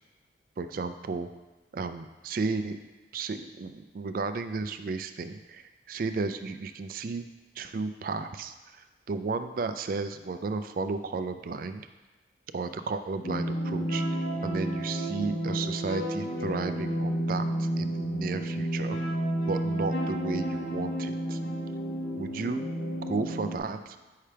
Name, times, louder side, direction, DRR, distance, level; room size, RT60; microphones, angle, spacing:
voice 1, 0.6-1.3 1.7-2.8 3.1-7.2 7.6-11.9 12.5-14.0 14.4-21.4 22.2-22.6 23.1-24.0, right 4 dB, 50° right, 9 dB, 0.3 m, -33 dB
sound 1, 13.2-23.6, right 1 dB, 70° left, 1.1 m, -31 dB
8.5 x 5.6 x 3.3 m, 1.2 s
head